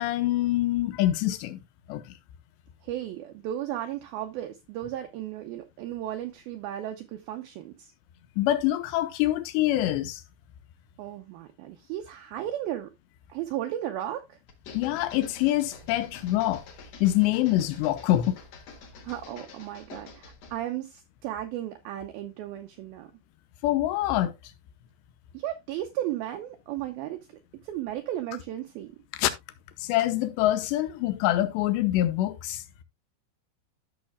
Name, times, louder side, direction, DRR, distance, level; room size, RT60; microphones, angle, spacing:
voice 1, 0.0-1.6 1.9-2.0 8.4-10.2 14.7-16.6 17.0-18.4 23.6-24.3 29.2-29.3 29.8-32.6, left 14 dB, 85° left, 2.8 m, -25 dB
voice 2, 2.8-7.9 11.0-12.9 13.3-14.4 19.0-23.1 25.3-28.9, right 12 dB, 90° right, 2.1 m, -35 dB
sound 1, 14.5-20.6, left 4 dB, 55° left, 2.0 m, -48 dB
13.5 x 6.5 x 2.2 m
omnidirectional pair, 5.2 m